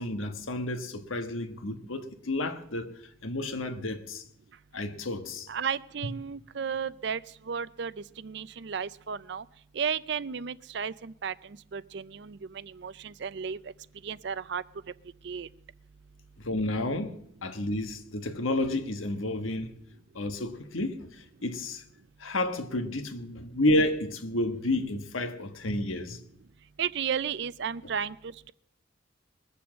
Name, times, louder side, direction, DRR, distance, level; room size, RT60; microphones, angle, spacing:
voice 1, 0.0-2.9 3.2-4.2 4.7-5.5 16.4-19.7 20.1-21.8 22.2-26.2, left 1 dB, 85° left, 1.4 m, -31 dB
voice 2, 5.5-9.5 9.7-13.7 14.0-14.6 15.2-15.5 26.8-28.5, right 7 dB, 60° right, 0.5 m, -34 dB
21.0 x 7.0 x 7.4 m
head